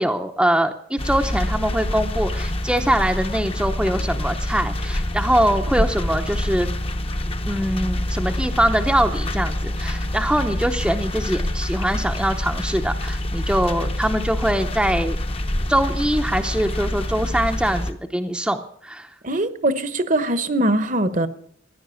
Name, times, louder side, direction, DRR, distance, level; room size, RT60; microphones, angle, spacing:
voice 1, 0.0-6.7 7.5-15.2 15.7-19.1, right 1 dB, 5° right, 4 dB, 0.7 m, -23 dB
sound 1, 1.0-17.9, left 1 dB, 30° left, 0.9 m, -26 dB
voice 2, 19.2-21.3, right 1 dB, 40° right, 13 dB, 1.0 m, -22 dB
15.5 x 10.5 x 7.0 m, 0.65 s
head